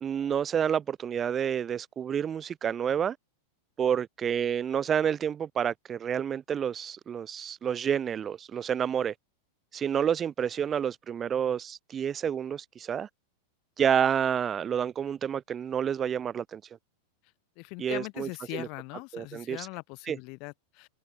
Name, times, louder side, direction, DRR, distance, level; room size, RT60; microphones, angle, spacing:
voice 1, 0.0-3.2 3.8-9.1 9.7-13.1 13.8-16.6 17.8-18.7 19.1-19.7 20.1-20.2, right 8 dB, 25° right, 0.6 m, -29 dB
voice 2, 17.6-20.9, left 31 dB, 45° left, 0.5 m, -40 dB
figure-of-eight pair, 90°, 0 cm